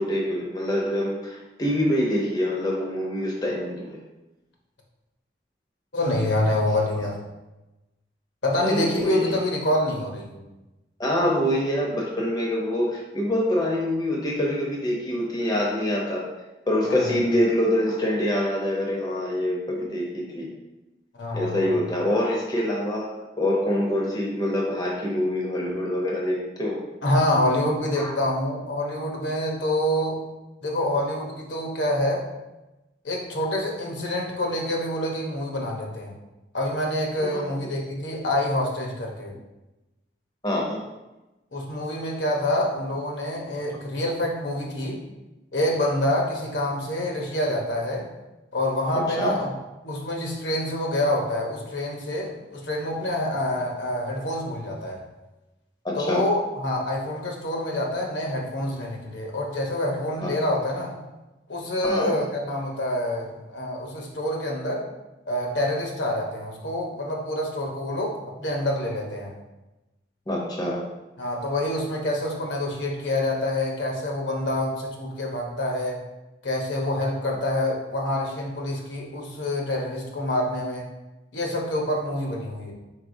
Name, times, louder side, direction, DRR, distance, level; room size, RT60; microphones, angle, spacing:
voice 1, 0.0-4.0 8.6-9.3 11.0-16.3 16.7-20.5 21.3-26.8 27.9-28.1 37.2-37.4 40.4-40.8 49.2-49.3 55.8-56.2 60.2-60.3 61.8-62.2 70.3-70.8, left 1 dB, 20° left, -2 dB, 0.6 m, -25 dB
voice 2, 5.9-7.2 8.4-10.4 16.8-17.0 21.2-21.8 27.0-30.2 30.6-32.3 33.0-36.1 36.5-39.3 41.5-45.0 45.5-48.1 48.5-49.5 49.8-55.0 56.0-60.9 61.5-64.9 65.3-69.3 71.2-76.1 76.4-80.9 81.3-82.7, left 1 dB, 80° left, -1 dB, 0.9 m, -26 dB
4.6 x 3.9 x 2.6 m, 1.0 s
head